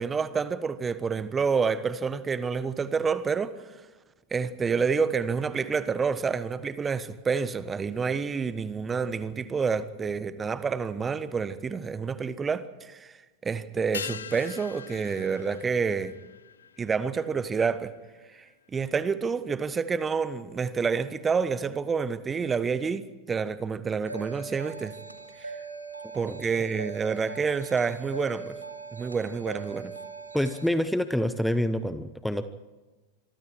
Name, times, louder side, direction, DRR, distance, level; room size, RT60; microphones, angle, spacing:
voice 1, 0.0-3.5 4.3-13.1 13.4-16.1 16.8-17.9 18.3-18.4 18.7-23.0 23.3-24.9 25.4-25.5 26.1-28.6 28.9-29.9, right 5 dB, 15° right, 1.2 m, -28 dB
sound 1, 13.9-18.7 18.9-19.0, left 7 dB, 70° left, 0.9 m, -42 dB
sound 2, 24.1-30.7, right 4 dB, 85° right, 2.0 m, -41 dB
voice 2, 30.3-32.5, left 1 dB, ahead, 1.0 m, -27 dB
26.0 x 24.0 x 4.7 m
figure-of-eight pair, 90°, 0 cm